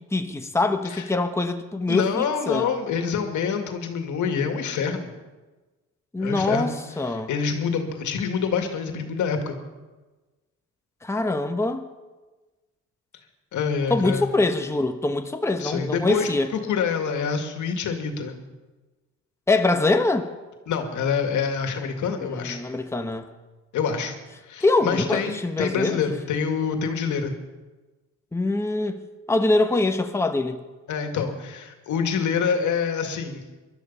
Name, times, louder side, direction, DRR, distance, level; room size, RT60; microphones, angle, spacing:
voice 1, 0.0-2.7 6.1-7.3 11.0-11.9 13.9-16.5 19.5-20.3 22.2-23.3 24.6-26.0 28.3-30.6, left 2 dB, 10° left, 5 dB, 1.1 m, -24 dB
voice 2, 1.9-5.1 6.2-6.7 7.0-9.6 13.5-14.3 15.6-18.4 20.7-22.6 23.7-24.1 24.5-27.3 30.9-33.4, left 6 dB, 75° left, 5 dB, 2.2 m, -26 dB
20.0 x 12.5 x 5.6 m, 1.2 s
cardioid pair, 90°, 30 cm